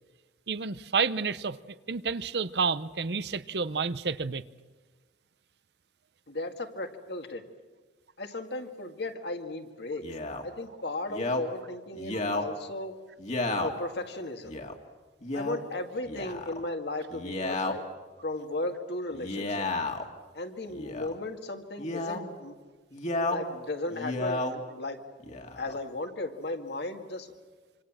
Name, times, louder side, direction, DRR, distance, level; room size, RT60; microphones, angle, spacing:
voice 1, 0.5-4.4 12.1-12.2, right 5 dB, 65° right, 0.8 m, -30 dB
voice 2, 6.3-7.4 8.2-10.1 10.4-12.9 13.6-14.5 15.3-17.8 18.2-19.7 20.3-22.5 23.3-25.0 25.6-27.3, left 2 dB, 65° left, 2.1 m, -36 dB
Male speech man speaking, 10.0-10.4 11.1-11.4 11.9-12.4 13.2-13.7 14.4-14.7 15.2-15.6 16.0-16.6 17.1-17.7 19.1-20.1 20.7-21.1 21.8-22.2 22.9-23.4 23.9-24.5 25.2-25.8, left 2 dB, 40° left, 2.2 m, -32 dB
26.5 x 26.0 x 7.5 m
head